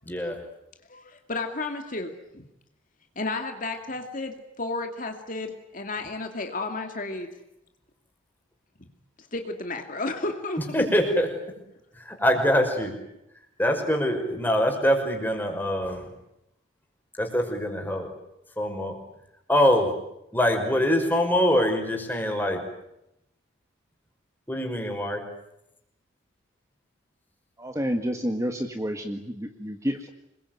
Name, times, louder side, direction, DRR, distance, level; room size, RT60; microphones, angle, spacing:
voice 1, 0.1-0.4 10.7-11.3 11.9-12.9 13.6-16.1 17.2-18.1 18.6-19.0 19.5-19.9 20.3-22.6 24.5-25.2, equal, 10° left, 3 dB, 5.6 m, -24 dB
voice 2, 0.9-2.4 3.2-7.3 8.8-8.9 9.2-10.9, left 2 dB, 40° left, 5 dB, 2.5 m, -32 dB
voice 3, 27.6-30.1, equal, 15° right, 5 dB, 1.7 m, -29 dB
27.5 x 22.0 x 9.3 m, 0.84 s
head